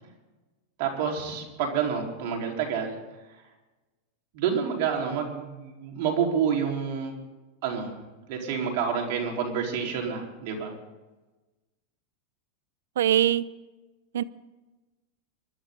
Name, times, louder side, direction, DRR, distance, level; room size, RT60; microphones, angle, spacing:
voice 1, 0.8-3.0 3.3-3.4 4.3-7.1 7.6-8.0 8.3-10.7, right 7 dB, 60° right, 4.4 m, -28 dB
voice 2, 13.0-13.4 14.1-14.2, right 11 dB, 85° right, 0.7 m, -22 dB
24.0 x 12.0 x 4.0 m
supercardioid pair, 125°, 0 cm